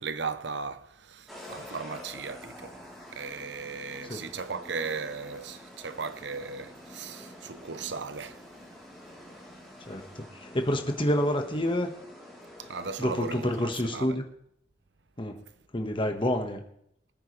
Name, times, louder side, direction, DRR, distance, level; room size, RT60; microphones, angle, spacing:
voice 1, 0.0-8.4 11.0-11.1 12.6-14.2, right 4 dB, 85° right, 0.8 m, -37 dB
sound 1, 1.3-14.0, left 1 dB, ahead, 3.5 m, -48 dB
voice 2, 9.9-11.9 13.0-14.2 15.2-15.4 15.7-16.6, left 1 dB, 30° left, 1.5 m, -28 dB
24.0 x 9.5 x 3.3 m
head